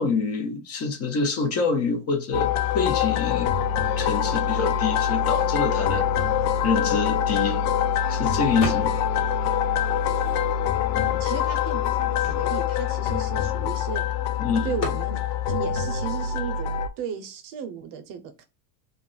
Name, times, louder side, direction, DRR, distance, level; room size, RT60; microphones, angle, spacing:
voice 1, 0.0-3.5 4.0-6.1 6.6-7.6 8.1-9.0 14.4-14.7, left 4 dB, 35° left, 0.5 m, -26 dB
sound 1, 2.3-16.9, left 9 dB, 85° left, 0.5 m, -24 dB
sound 2, 8.6-9.2 9.5-10.8 11.4-11.5 11.7-14.0 14.8-15.1, left 2 dB, 50° left, 1.3 m, -36 dB
voice 2, 10.9-14.0 14.6-15.2 15.5-18.4, right 7 dB, 45° right, 0.6 m, -35 dB
2.3 x 2.0 x 3.7 m
supercardioid pair, 130°, 46 cm